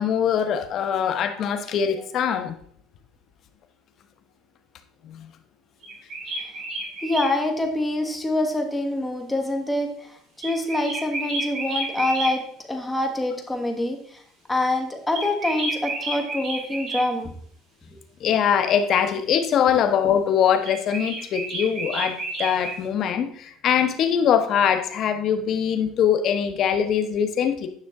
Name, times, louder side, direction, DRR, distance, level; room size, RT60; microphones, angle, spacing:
voice 1, 0.0-2.5 5.0-5.3 18.2-27.7, left 8 dB, 45° left, 8 dB, 1.0 m, -22 dB
sound 1, 5.8-7.3 10.4-12.3 15.1-17.1 20.6-22.8, right 2 dB, 40° right, 3.5 m, -30 dB
voice 2, 7.0-9.9 10.4-12.4 12.7-14.0 14.5-17.3 19.7-19.8, left 1 dB, 10° left, 4 dB, 1.4 m, -25 dB
10.0 x 5.9 x 3.7 m, 0.63 s
cardioid pair, 130°, 0 cm